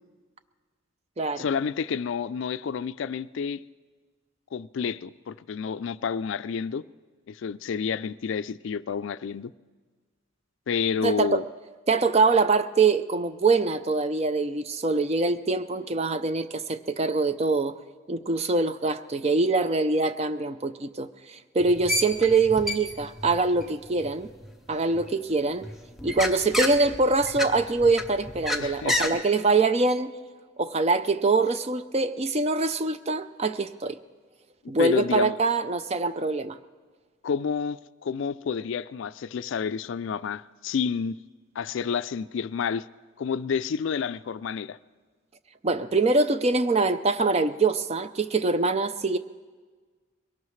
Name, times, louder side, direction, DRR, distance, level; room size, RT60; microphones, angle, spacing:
voice 1, 1.3-3.6 4.5-6.8 7.3-9.5 10.7-11.4 28.6-29.2 34.8-35.4 37.2-41.2 41.6-42.9 43.2-44.8, left 6 dB, 65° left, 0.3 m, -29 dB
voice 2, 11.0-11.4 11.9-17.7 18.1-24.3 24.7-25.7 26.0-30.1 30.6-34.0 34.7-36.6 45.6-49.2, right 3 dB, 30° right, 0.4 m, -24 dB
sound 1, 21.6-25.0 25.5-29.1, left 1 dB, ahead, 0.7 m, -30 dB
22.0 x 18.0 x 3.2 m
head